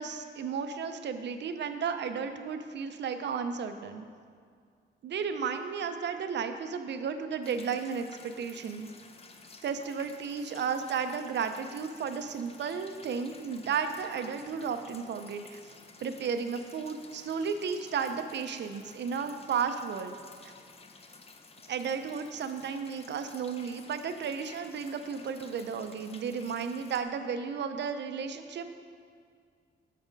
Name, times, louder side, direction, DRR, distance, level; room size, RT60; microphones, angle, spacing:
voice 1, 0.0-4.0 5.0-8.9 9.6-15.6 16.0-20.2 21.7-28.7, right 6 dB, 60° right, 8 dB, 0.5 m, -33 dB
sound 1, 7.4-27.0, left 4 dB, 30° left, 0.4 m, -53 dB
7.3 x 4.2 x 5.1 m, 2.1 s
wide cardioid pair, 140°, 20 cm